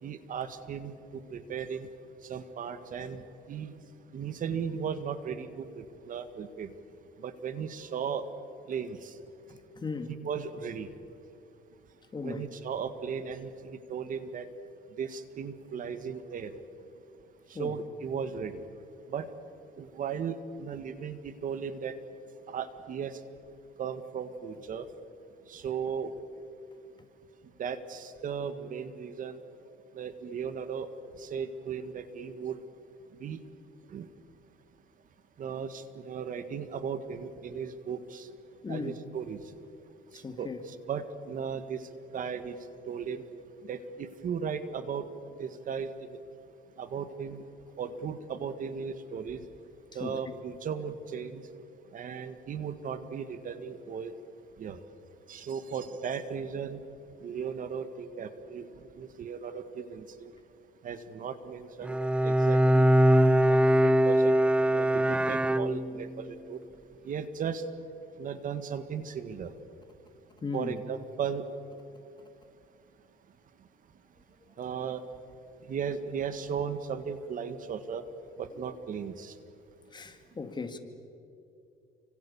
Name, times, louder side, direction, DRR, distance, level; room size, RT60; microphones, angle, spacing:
voice 1, 0.0-1.9 2.2-3.2 3.5-3.7 4.1-6.7 7.2-8.2 8.7-9.2 10.2-10.9 12.2-14.5 15.0-16.6 17.5-18.6 19.1-19.3 19.8-22.0 22.5-23.2 23.8-24.9 25.5-26.1 27.6-29.4 29.9-30.9 31.2-32.6 33.2-33.4 33.9-34.1 35.4-38.3 38.7-39.4 40.1-42.6 42.9-43.2 43.6-45.1 45.4-46.2 46.8-47.4 47.8-49.4 49.9-51.5 51.9-54.1 54.6-54.8 55.3-56.8 57.2-58.7 58.9-60.3 60.8-62.9 63.4-64.4 64.7-66.6 67.0-67.6 68.2-69.5 70.5-71.5 74.6-75.0 75.7-78.0 78.4-79.4, right 7 dB, 50° right, 1.8 m, -36 dB
voice 2, 9.5-10.2 12.1-12.5 17.5-17.8 38.6-39.0 40.1-40.6 50.0-50.2 70.4-70.8 79.9-80.8, left 4 dB, 25° left, 2.4 m, -37 dB
Bowed string instrument, 61.8-66.2, equal, 5° right, 0.6 m, -22 dB
30.0 x 25.0 x 7.1 m
cardioid pair, 110°, 17 cm